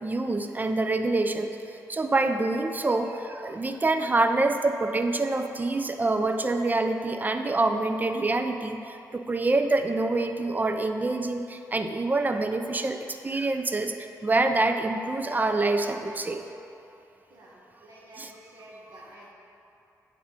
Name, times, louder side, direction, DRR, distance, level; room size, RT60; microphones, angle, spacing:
voice 1, 0.0-16.4 18.2-18.3, right 2 dB, 25° right, 7 dB, 0.4 m, -26 dB
voice 2, 17.3-19.3, right 1 dB, 70° right, -5 dB, 1.2 m, -50 dB
8.5 x 3.6 x 3.6 m, 2.8 s
cardioid pair, 60°, 7 cm